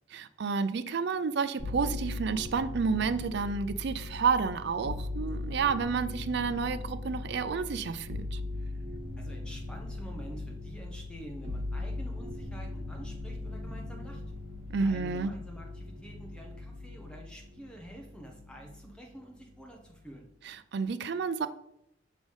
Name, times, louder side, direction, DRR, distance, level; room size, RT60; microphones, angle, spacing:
voice 1, 0.1-8.4 14.7-15.3 20.4-21.5, right 5 dB, 60° right, 12 dB, 0.4 m, -30 dB
sound 1, 1.6-19.0 19.4-20.1, left 2 dB, 75° right, 1.4 m, -39 dB
voice 2, 9.2-14.2 14.8-20.3, right 1 dB, 5° left, 0 dB, 1.1 m, -48 dB
6.2 x 3.4 x 5.4 m, 0.77 s
head